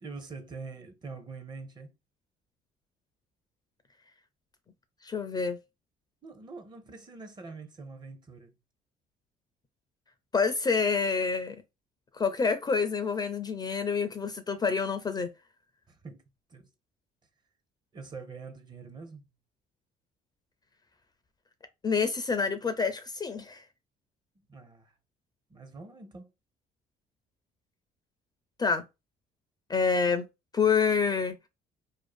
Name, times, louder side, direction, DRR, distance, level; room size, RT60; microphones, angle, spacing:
voice 1, 0.0-1.9 6.2-8.6 15.9-16.2 16.5-16.7 17.9-19.2 24.5-24.9 25.5-26.3, right 4 dB, 25° right, 0.6 m, -44 dB
voice 2, 5.0-5.6 10.3-11.6 12.1-15.3 21.8-23.6 28.6-28.8 29.7-30.3 30.5-31.4, left 5 dB, 25° left, 0.4 m, -27 dB
2.5 x 2.4 x 2.2 m
cardioid pair, 110°, 17 cm